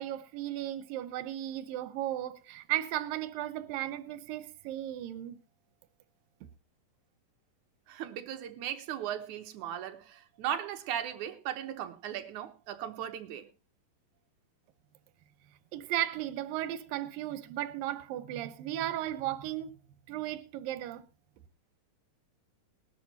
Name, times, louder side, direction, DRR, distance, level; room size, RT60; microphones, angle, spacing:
voice 1, 0.0-5.4 15.7-19.7 20.1-21.0, right 13 dB, 85° right, 2.6 m, -35 dB
voice 2, 7.9-13.5, right 10 dB, 70° right, 2.3 m, -37 dB
20.0 x 12.0 x 2.8 m
omnidirectional pair, 4.0 m